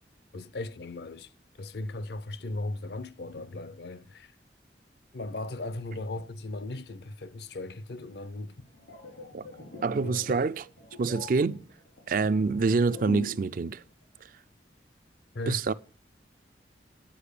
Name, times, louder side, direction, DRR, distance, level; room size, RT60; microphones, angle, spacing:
voice 1, 0.3-1.3 1.6-4.3 5.1-8.7 10.0-10.3 15.3-15.6, left 2 dB, 65° left, 0.5 m, -37 dB
sound 1, 8.6-13.5 13.8-14.0, left 3 dB, 90° left, 3.9 m, -43 dB
voice 2, 9.8-10.7 11.0-11.6 12.1-13.8 14.2-14.3 15.5-15.7, right 4 dB, 50° right, 0.4 m, -26 dB
10.0 x 5.1 x 6.6 m
head